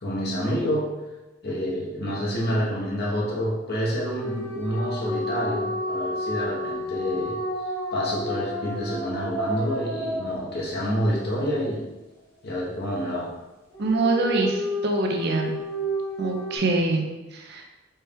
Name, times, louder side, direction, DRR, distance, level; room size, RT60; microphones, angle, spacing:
voice 1, 0.0-0.9 1.4-7.4 7.9-11.9 12.4-13.4, equal, 50° left, -3 dB, 1.0 m, -28 dB
sound 1, 4.2-11.1 13.7-16.6, equal, 10° left, 1.1 m, -31 dB
voice 2, 13.8-15.6 16.2-17.0 17.3-17.6, right 2 dB, 55° right, 2 dB, 0.6 m, -24 dB
4.5 x 3.3 x 3.5 m, 1.0 s
head